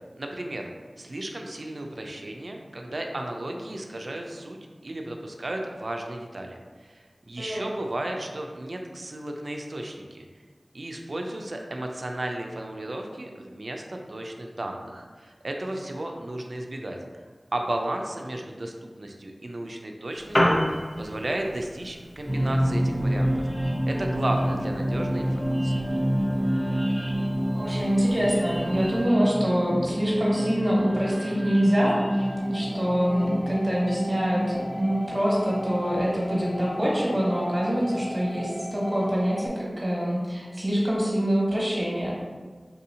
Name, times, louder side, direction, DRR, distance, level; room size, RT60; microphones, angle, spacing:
voice 1, 0.2-0.7 1.0-4.6 4.8-10.2 10.7-17.0 17.5-23.3 23.8-25.8, right 1 dB, 70° right, 2 dB, 0.4 m, -34 dB
voice 2, 7.4-7.8 27.5-42.1, equal, 30° right, -5 dB, 1.4 m, -25 dB
Piano, 20.1-29.1, equal, 65° left, 0.7 m, -33 dB
sound 1, 22.3-39.4, equal, 10° right, 0.8 m, -28 dB
sound 2, 32.2-39.5, equal, 25° left, 0.6 m, -38 dB
4.0 x 2.7 x 2.7 m, 1.4 s
wide cardioid pair, 40°, 0 cm